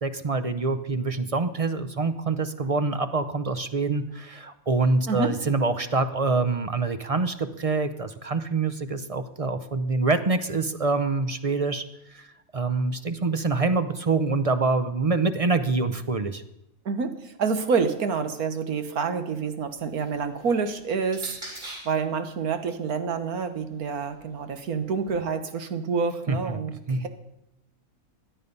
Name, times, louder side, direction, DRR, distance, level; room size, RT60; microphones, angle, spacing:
voice 1, 0.0-11.8 12.1-12.3 12.5-16.4 26.3-26.6 26.9-27.1, right 3 dB, 35° right, 10 dB, 0.6 m, -25 dB
voice 2, 16.9-27.1, right 5 dB, 85° right, 8 dB, 1.8 m, -28 dB
sound 1, 19.6-22.1 23.0-25.1, right 1 dB, 55° right, 5.2 m, -45 dB
16.5 x 11.0 x 5.4 m, 0.87 s
omnidirectional pair, 1.5 m